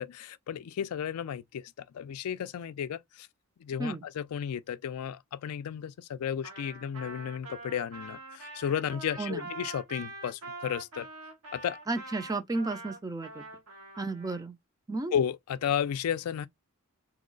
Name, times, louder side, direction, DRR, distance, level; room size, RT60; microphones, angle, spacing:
voice 1, 0.0-3.3 3.6-11.1 11.5-11.8 15.1-16.5, left 8 dB, 75° left, 0.3 m, -33 dB
Trumpet, 6.4-14.4, right 2 dB, 85° right, 1.6 m, -44 dB
voice 2, 11.9-13.4 14.0-14.6 14.9-15.1, right 3 dB, 15° right, 0.4 m, -33 dB
3.0 x 2.0 x 3.8 m
head